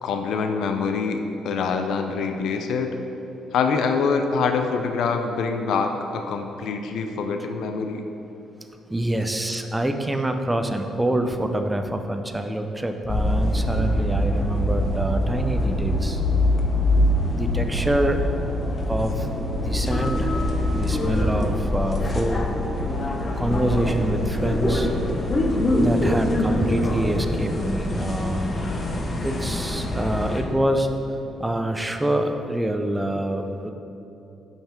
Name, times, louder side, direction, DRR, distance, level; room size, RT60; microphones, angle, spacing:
voice 1, 0.0-3.0 3.5-8.0, left 5 dB, 75° left, 5 dB, 0.4 m, -25 dB
voice 2, 8.9-16.2 17.3-18.2 18.9-19.3 19.6-20.3 20.7-22.5 23.3-24.9 25.8-28.7 29.2-30.9 31.4-33.7, right 1 dB, 10° right, 6 dB, 0.5 m, -26 dB
sound 1, 13.1-30.4, left 1 dB, 35° left, 0.8 m, -24 dB
5.7 x 5.5 x 4.4 m, 3.0 s
cardioid pair, 90°, 0 cm